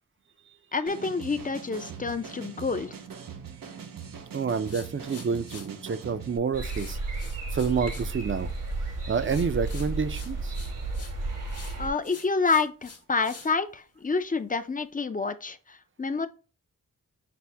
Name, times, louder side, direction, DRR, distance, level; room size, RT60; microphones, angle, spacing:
voice 1, 0.7-2.9 11.8-16.3, left 4 dB, 25° left, 0.5 m, -28 dB
sound 1, 0.9-6.4, right 7 dB, 90° right, 0.7 m, -42 dB
voice 2, 4.3-7.0 7.5-8.5 9.1-10.5, right 5 dB, 40° right, 0.5 m, -28 dB
sound 2, 4.6-5.7 6.6-8.1 8.4-8.8 9.2-11.1 11.5-13.5, left 4 dB, 45° left, 0.9 m, -47 dB
sound 3, 6.5-11.9, right 3 dB, 70° right, 1.3 m, -33 dB
6.0 x 2.1 x 3.3 m
wide cardioid pair, 70°, 33 cm